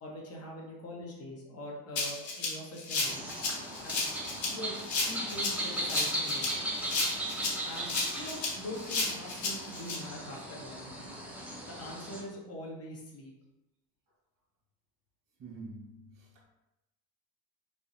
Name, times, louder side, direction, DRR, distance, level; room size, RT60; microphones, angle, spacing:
voice 1, 0.0-3.3 3.8-4.0 4.4-6.7 7.6-11.2 11.7-13.3, left 1 dB, 30° left, 0.7 m, -43 dB
Rattle (instrument), 2.0-10.0, left 3 dB, 65° left, 0.9 m, -33 dB
sound 1, 3.0-12.2, right 1 dB, 5° right, 0.4 m, -37 dB
voice 2, 15.4-16.5, right 2 dB, 40° right, 1.0 m, -47 dB
2.6 x 2.1 x 2.4 m
supercardioid pair, 80°, 50 cm